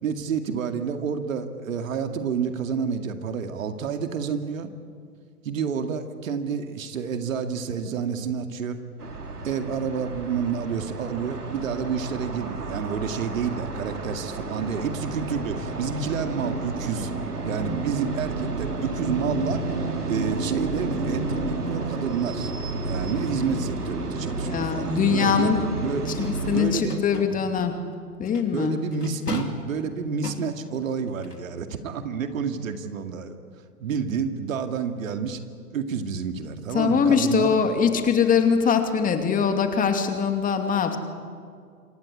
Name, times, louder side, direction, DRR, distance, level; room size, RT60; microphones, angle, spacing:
voice 1, 0.0-4.7 5.4-8.8 9.4-17.1 17.4-19.7 20.1-22.5 22.9-25.5 25.8-26.0 26.5-27.0 27.3-27.4 28.5-33.4 33.8-35.4 35.7-37.6, right 6 dB, 60° right, 7 dB, 2.3 m, -29 dB
sound 1, 9.0-26.7, right 3 dB, 80° right, 3.9 m, -31 dB
voice 2, 24.5-25.7 26.2-27.8 28.2-28.8 36.7-41.0, left 6 dB, 20° left, 6 dB, 2.5 m, -22 dB
sound 2, 25.2-25.5 26.1-27.4 28.3-28.5 28.9-29.7 30.2-30.8 31.2-31.5, left 3 dB, 90° left, 2.9 m, -36 dB
27.0 x 24.0 x 8.5 m, 2.2 s
figure-of-eight pair, 110°, 46 cm